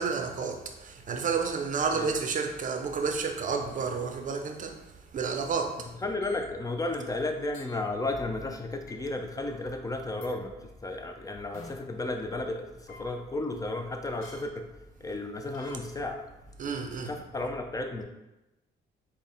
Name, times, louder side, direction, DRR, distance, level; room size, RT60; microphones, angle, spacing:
voice 1, 0.0-4.8 5.1-5.9 16.6-17.1, right 5 dB, 40° right, 0.5 m, -30 dB
voice 2, 6.0-14.7 15.0-16.3 17.0-18.0, left 2 dB, 20° left, 0.4 m, -33 dB
sound 1, 6.2-6.4 7.5-7.7 8.9-9.0 10.2-10.3 11.5-11.7 12.9-13.1 14.2-14.4 15.5-15.7, left 3 dB, 90° left, 0.7 m, -47 dB
4.0 x 2.1 x 3.5 m
cardioid pair, 90°, 20 cm